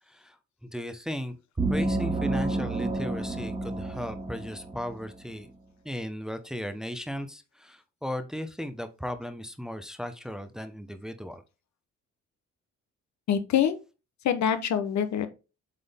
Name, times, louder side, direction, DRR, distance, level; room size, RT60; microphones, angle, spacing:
voice 1, 0.6-1.4 1.7-5.5 5.8-11.4, equal, ahead, 0.8 m, -36 dB
sound 1, 1.6-5.1, right 2 dB, 20° right, 1.8 m, -30 dB
voice 2, 13.3-13.8 14.2-15.3, left 9 dB, 65° left, 1.0 m, -25 dB
8.0 x 3.7 x 3.6 m
cardioid pair, 90°, 30 cm